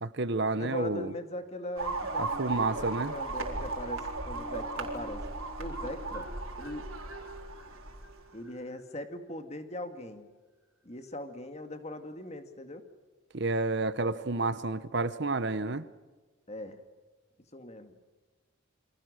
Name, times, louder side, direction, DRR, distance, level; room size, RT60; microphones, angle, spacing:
voice 1, 0.0-1.1 2.2-3.1 13.3-15.8, right 3 dB, 55° right, 14 dB, 1.0 m, -30 dB
voice 2, 0.6-5.3 5.6-6.3 6.6-6.9 8.3-10.3 10.8-12.8 16.5-16.8 17.5-17.9, left 1 dB, 30° left, 8 dB, 2.1 m, -40 dB
sound 1, 1.8-8.1, right 3 dB, 85° right, 4.2 m, -36 dB
Marimba xylophone, 2.0-2.9 3.4-8.9, left 1 dB, 10° right, 4.8 m, -49 dB
29.0 x 25.0 x 6.6 m, 1.3 s
head